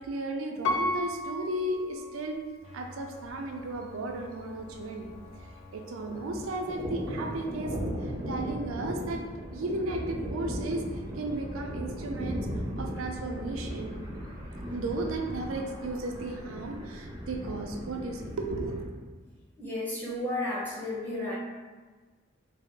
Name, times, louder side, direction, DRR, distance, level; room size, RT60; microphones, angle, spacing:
voice 1, 0.0-2.4 2.7-5.1 5.7-7.8 8.0-9.2 9.5-12.5 12.8-13.9 14.7-18.9, right 2 dB, 80° right, 2 dB, 0.4 m, -34 dB
Piano, 0.6-2.6 3.2-3.3, left 1 dB, 75° left, 0.4 m, -33 dB
sound 1, 2.6-6.7, left 3 dB, 35° left, 0.8 m, -51 dB
Thunder, 3.3-3.4 3.7-3.8 4.1-5.6 5.9-18.9, equal, 20° right, 0.4 m, -37 dB
voice 2, 19.6-21.3, left 1 dB, 10° left, -7 dB, 0.9 m, -33 dB
3.6 x 2.0 x 3.6 m, 1.3 s
head